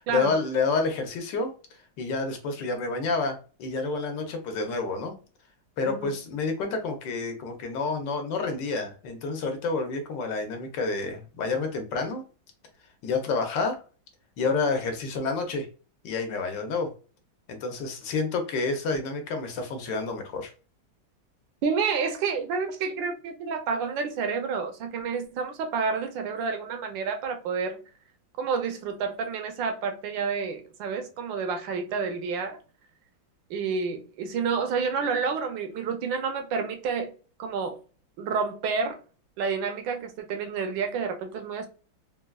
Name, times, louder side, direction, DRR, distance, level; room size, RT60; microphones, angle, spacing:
voice 1, 0.1-1.5 2.0-5.2 5.8-12.2 13.0-13.8 14.4-15.7 16.0-16.9 17.5-20.5, left 4 dB, 75° left, 1.3 m, -29 dB
voice 2, 21.6-27.8 28.4-32.6 33.5-37.1 37.4-37.8 38.2-39.0 39.4-41.7, right 5 dB, 75° right, 1.3 m, -29 dB
4.0 x 2.2 x 2.2 m
omnidirectional pair, 2.1 m